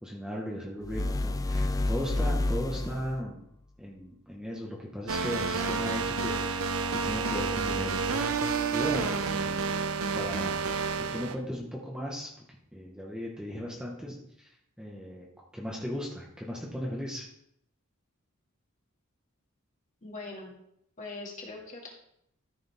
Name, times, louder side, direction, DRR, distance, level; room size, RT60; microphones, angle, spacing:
voice 1, 0.0-3.4 3.8-6.7 7.0-8.0 8.7-10.6 11.1-12.3 12.7-14.5 14.8-15.3 15.5-17.2, equal, 5° right, -3 dB, 1.5 m, -37 dB
sound 1, 0.8-3.2, left 2 dB, 15° left, 0.3 m, -29 dB
sound 2, 5.1-11.4, right 4 dB, 90° right, 0.8 m, -30 dB
voice 2, 20.0-20.5 21.0-21.9, left 3 dB, 35° left, -2 dB, 2.5 m, -41 dB
13.5 x 7.0 x 3.6 m, 0.74 s
head